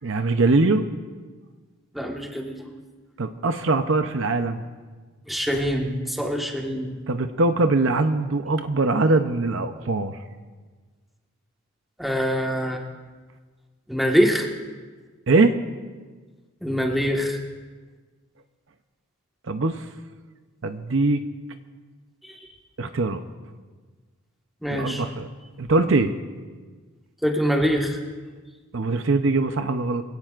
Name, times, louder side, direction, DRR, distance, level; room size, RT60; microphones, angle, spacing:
voice 1, 0.0-0.9 3.2-4.6 7.1-10.1 15.3-15.6 19.5-19.9 20.6-21.2 22.8-23.2 24.7-25.3 25.6-26.1 28.7-30.0, right 3 dB, 60° right, 8 dB, 0.7 m, -22 dB
voice 2, 1.9-2.7 5.3-6.9 12.0-12.8 13.9-14.5 16.6-17.4 22.3-22.4 24.6-25.0 27.2-28.0, equal, ahead, 0 dB, 1.4 m, -24 dB
24.0 x 17.0 x 2.5 m, 1.4 s
head